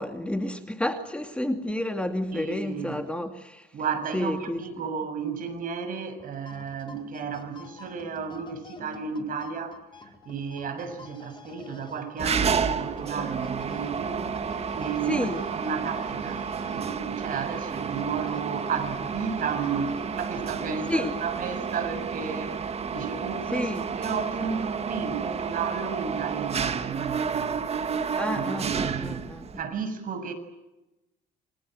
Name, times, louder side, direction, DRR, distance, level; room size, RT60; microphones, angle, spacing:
voice 1, 0.0-3.7 4.1-4.6 15.1-15.4 20.9-21.1 23.5-23.8 28.2-29.5, left 1 dB, 5° left, 2.5 m, -30 dB
voice 2, 2.3-3.0 3.7-9.8 10.3-27.7 28.3-29.2 29.6-30.3, right 6 dB, 55° right, 6.9 m, -33 dB
sound 1, 6.2-21.2, left 4 dB, 30° left, 4.0 m, -48 dB
Mechanisms, 12.2-29.6, right 6 dB, 40° right, 2.0 m, -31 dB
28.5 x 25.0 x 7.9 m
cardioid pair, 110°, 17 cm